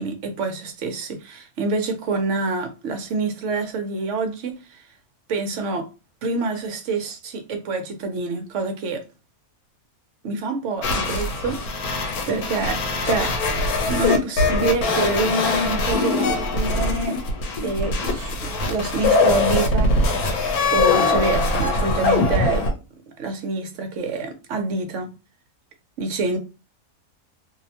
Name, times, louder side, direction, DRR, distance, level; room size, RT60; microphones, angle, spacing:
voice 1, 0.0-4.8 5.3-5.9 6.2-9.0 10.2-13.4 13.9-17.2 17.6-19.9 20.7-22.6 23.2-25.1 26.0-26.4, right 3 dB, 65° right, 0.8 m, -26 dB
sound 1, 10.8-22.7, left 3 dB, 90° left, 1.1 m, -22 dB
2.6 x 2.0 x 2.7 m
omnidirectional pair, 1.5 m